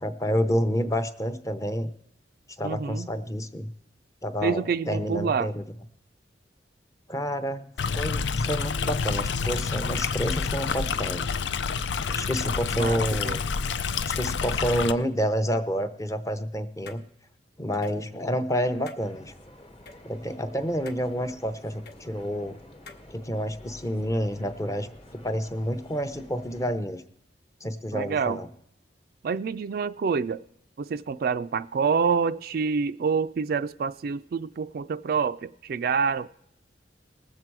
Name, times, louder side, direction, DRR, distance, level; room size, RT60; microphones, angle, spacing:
voice 1, 0.0-1.9 2.6-3.7 4.2-5.6 7.1-7.6 7.9-11.3 12.1-13.4 14.1-17.0 17.6-19.3 20.0-22.6 23.1-27.0 27.6-28.5, equal, 20° left, 9 dB, 0.7 m, -29 dB
voice 2, 2.6-3.1 4.4-5.5 12.7-13.4 27.9-28.4 29.2-30.4 30.8-36.3, right 5 dB, 55° right, 12 dB, 0.3 m, -27 dB
Stream, 7.8-14.9, left 5 dB, 85° left, 0.5 m, -28 dB
sound 1, 16.9-17.0 17.7-18.0 18.9-19.0 19.9-20.0 20.9-21.1 21.9-22.0 22.9-23.0, left 4 dB, 60° left, 1.1 m, -46 dB
sound 2, 19.0-26.7, left 1 dB, 35° left, 1.2 m, -49 dB
19.5 x 7.5 x 4.6 m, 0.71 s
head